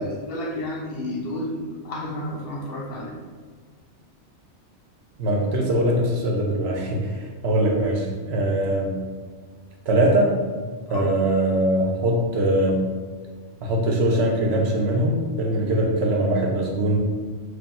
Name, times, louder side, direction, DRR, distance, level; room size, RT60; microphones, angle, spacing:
voice 1, 0.0-3.2 10.9-11.1, left 1 dB, 60° left, -2 dB, 0.8 m, -31 dB
voice 2, 5.2-9.0 9.9-10.4 10.9-12.8 13.6-17.0, right 1 dB, 65° right, 0 dB, 0.8 m, -22 dB
3.1 x 2.2 x 4.0 m, 1.5 s
omnidirectional pair, 1.2 m